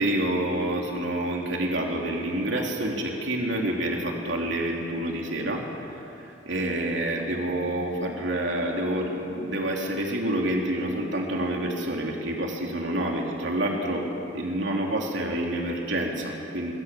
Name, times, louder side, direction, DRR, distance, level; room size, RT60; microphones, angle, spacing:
voice 1, 0.0-5.6 5.9-14.1 14.3-16.7, right 1 dB, 70° right, 0 dB, 3.3 m, -28 dB
26.5 x 21.0 x 7.7 m, 2.9 s
head